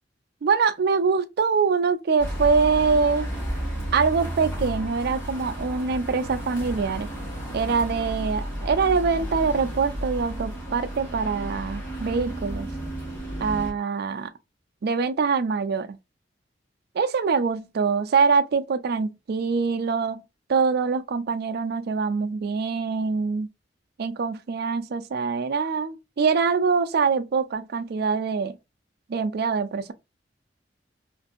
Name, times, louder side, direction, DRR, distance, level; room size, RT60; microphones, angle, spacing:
voice 1, 0.4-3.3 3.9-7.1 7.5-12.7 13.4-14.3 14.8-16.0 16.9-20.2 20.5-23.5 24.0-28.6 29.1-29.9, right 5 dB, 60° right, 0.4 m, -24 dB
sound 1, 2.2-13.7, right 1 dB, 15° left, 1.3 m, -32 dB
2.6 x 2.5 x 2.4 m
head